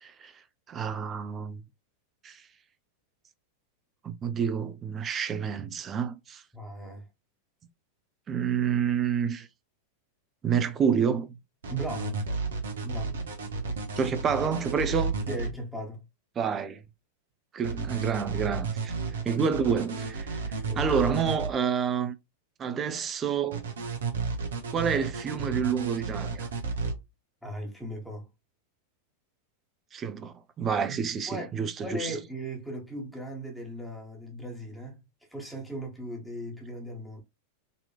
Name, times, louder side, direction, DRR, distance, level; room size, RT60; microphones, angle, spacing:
voice 1, 0.0-0.3 0.7-1.6 2.2-2.4 4.0-6.4 8.3-9.5 10.4-11.4 14.0-15.1 16.4-16.8 17.5-18.9 19.2-22.1 22.6-23.6 24.7-26.5 29.9-32.1, right 7 dB, 25° right, 0.6 m, -28 dB
voice 2, 6.5-7.1 11.7-12.3 12.8-13.1 15.3-16.0 20.6-21.0 27.4-28.3 30.8-31.0 31.3-35.0 35.3-37.2, right 1 dB, ahead, 1.3 m, -37 dB
sound 1, 11.6-15.5 17.6-21.5 23.5-26.9, right 4 dB, 65° right, 0.9 m, -32 dB
4.1 x 2.9 x 2.3 m
figure-of-eight pair, 90°, 0 cm